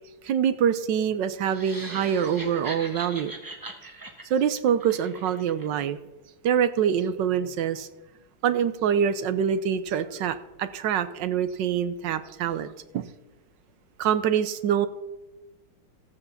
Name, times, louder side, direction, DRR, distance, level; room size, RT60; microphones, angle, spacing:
voice 1, 0.2-3.4 4.3-6.0 6.4-7.9 8.4-13.1 14.0-14.9, right 8 dB, 70° right, 12 dB, 1.2 m, -25 dB
sound 1, 1.4-5.7, right 2 dB, 15° right, 0.7 m, -40 dB
14.5 x 6.9 x 7.0 m, 1.0 s
omnidirectional pair, 2.3 m